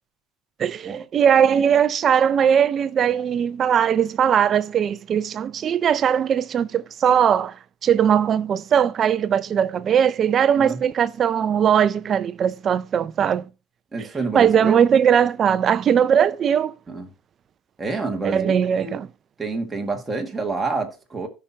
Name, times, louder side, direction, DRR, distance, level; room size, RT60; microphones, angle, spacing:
voice 1, 0.6-7.6 7.8-13.5 14.3-16.7 18.2-19.1, right 8 dB, 30° right, 0.5 m, -19 dB
voice 2, 13.9-14.9 16.9-17.1 17.8-18.5 18.8-19.0 19.4-21.3, right 3 dB, 10° right, 1.8 m, -28 dB
15.5 x 5.8 x 2.8 m
cardioid pair, 145°, 0 cm